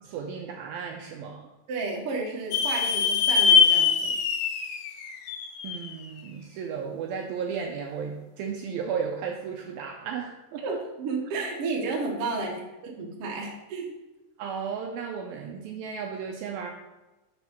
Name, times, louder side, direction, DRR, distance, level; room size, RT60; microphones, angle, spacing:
voice 1, 0.0-1.5 5.6-10.8 14.4-16.7, right 6 dB, 80° right, 2 dB, 2.2 m, -34 dB
voice 2, 1.7-4.1 10.6-13.9, right 3 dB, 60° right, -1 dB, 1.5 m, -32 dB
sound 1, 2.5-6.0, left 6 dB, 80° left, 2.5 m, -23 dB
7.0 x 5.8 x 4.5 m, 1.1 s
omnidirectional pair, 4.6 m